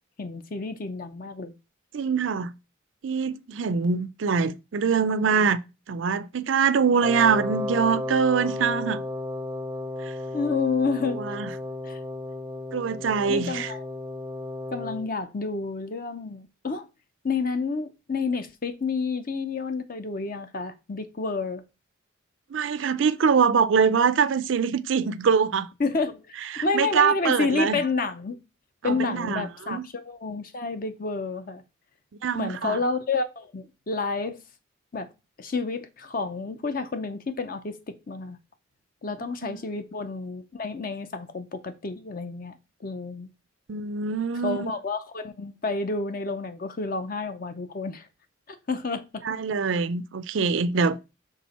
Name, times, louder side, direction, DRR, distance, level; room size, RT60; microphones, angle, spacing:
voice 1, 0.2-1.5 10.3-11.4 11.8-12.0 13.3-13.8 14.7-16.9 17.2-21.6 25.8-28.4 28.8-31.6 32.3-34.4 34.9-35.1 35.4-38.4 39.0-43.3 44.4-48.1 48.5-49.2, left 4 dB, 45° left, 0.5 m, -30 dB
voice 2, 1.9-2.5 3.0-5.6 5.9-9.0 10.0-10.1 11.1-11.5 12.7-13.7 22.5-25.7 26.5-27.8 28.8-29.8 32.2-32.8 39.5-39.6 43.7-44.7 49.2-51.0, right 6 dB, 70° right, 0.4 m, -24 dB
Wind instrument woodwind instrument, 7.0-15.1, left 2 dB, 15° right, 0.5 m, -33 dB
6.1 x 3.8 x 4.1 m
head